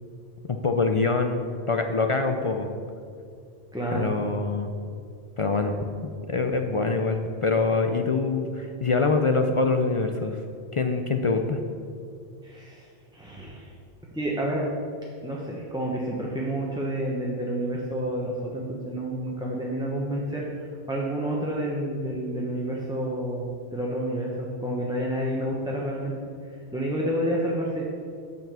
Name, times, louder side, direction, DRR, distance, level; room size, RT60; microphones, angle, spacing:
voice 1, 0.4-2.7 3.9-4.7 5.4-5.8 6.0-10.4 10.7-11.6, left 3 dB, 55° left, 6 dB, 0.3 m, -25 dB
voice 2, 3.7-4.1 12.4-13.7 14.1-14.7 15.2-26.1 26.7-27.8, right 1 dB, 5° right, -5 dB, 0.9 m, -29 dB
9.4 x 5.2 x 6.8 m, 2.3 s
omnidirectional pair, 1.2 m